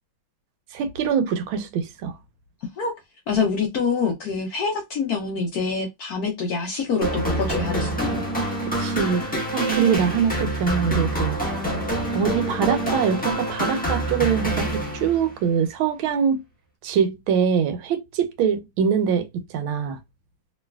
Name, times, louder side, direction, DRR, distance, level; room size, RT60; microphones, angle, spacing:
voice 1, 0.7-2.1 8.8-9.2 9.5-11.4 12.1-16.4 16.8-20.0, right 7 dB, 85° right, 1.5 m, -23 dB
voice 2, 3.3-8.2, left 5 dB, 70° left, 0.9 m, -26 dB
sound 1, 7.0-15.3, right 1 dB, 10° left, 0.4 m, -26 dB
3.1 x 3.0 x 2.2 m
omnidirectional pair, 2.2 m